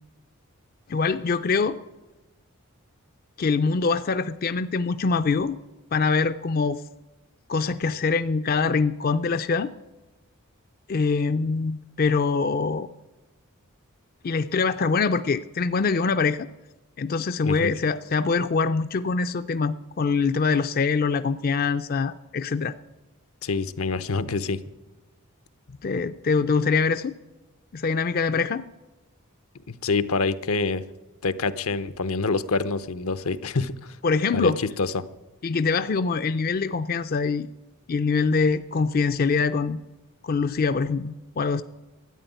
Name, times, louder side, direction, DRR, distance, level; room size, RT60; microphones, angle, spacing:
voice 1, 0.9-1.8 3.4-5.6 5.9-6.8 7.5-9.7 10.9-12.9 14.2-16.5 17.0-22.7 25.8-27.2 27.7-28.6 34.0-34.6 35.4-37.5 37.9-39.8 40.2-41.6, left 4 dB, 45° left, 12 dB, 0.4 m, -24 dB
voice 2, 23.4-24.6 29.7-30.8 31.2-34.0 34.3-35.0, left 4 dB, 80° left, 13 dB, 0.8 m, -26 dB
13.0 x 9.7 x 9.2 m, 1.1 s
head